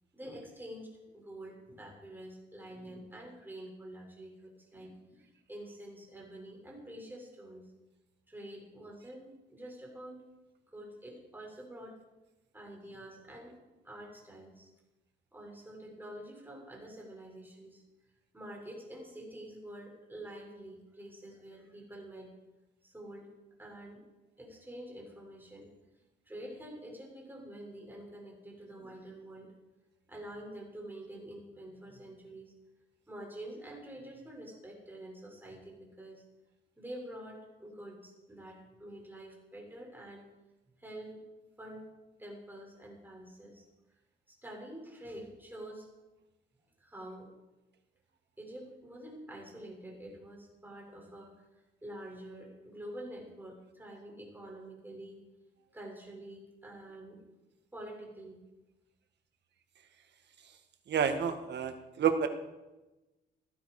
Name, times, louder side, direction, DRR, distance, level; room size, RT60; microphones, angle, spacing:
voice 1, 0.1-7.6 8.3-10.2 10.7-11.9 12.5-13.6 13.8-14.7 15.3-17.8 18.3-22.3 22.8-23.3 23.6-24.0 24.4-25.7 26.3-29.5 30.1-32.5 33.1-36.2 36.8-40.3 40.8-41.2 41.6-41.9 42.2-43.6 44.4-45.9 46.8-47.3 48.4-51.3 51.8-55.2 55.7-57.2 57.7-58.4, right 1 dB, 10° right, -1 dB, 6.4 m, -47 dB
voice 2, 60.9-62.3, right 7 dB, 60° right, 7 dB, 1.7 m, -29 dB
17.5 x 12.0 x 4.9 m, 1.0 s
cardioid pair, 90°, 20 cm